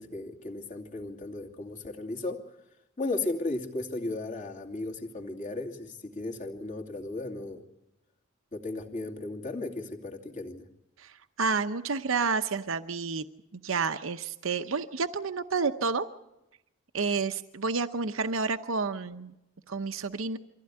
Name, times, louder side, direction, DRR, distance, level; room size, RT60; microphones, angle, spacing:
voice 1, 0.0-2.5 3.0-7.6 8.5-10.6, left 2 dB, 40° left, 2 dB, 2.7 m, -35 dB
voice 2, 11.0-13.2 13.5-16.1 16.9-19.3 19.7-20.4, right 4 dB, 90° right, 9 dB, 0.8 m, -30 dB
24.5 x 15.5 x 9.8 m, 0.92 s
head